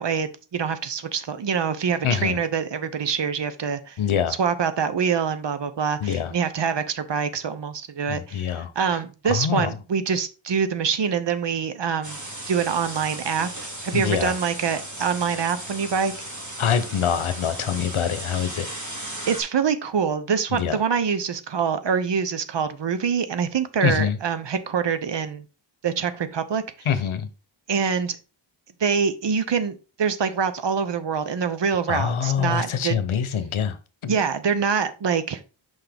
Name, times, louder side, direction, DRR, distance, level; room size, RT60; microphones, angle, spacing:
voice 1, 0.0-4.0 4.4-12.2 12.5-16.1 19.3-25.4 25.8-26.6 27.7-28.2 28.8-32.9 34.1-35.4, right 6 dB, 60° right, 0.8 m, -25 dB
voice 2, 2.0-2.4 4.0-4.3 6.0-6.3 8.1-8.7 9.3-9.7 13.9-14.3 16.6-18.7 20.5-20.8 23.8-24.2 26.9-27.3 31.9-33.8 34.0-34.2, left 8 dB, 75° left, 0.9 m, -24 dB
sound 1, 12.0-19.4, right 1 dB, 35° right, 2.4 m, -36 dB
5.9 x 5.4 x 3.4 m
wide cardioid pair, 85°, 49 cm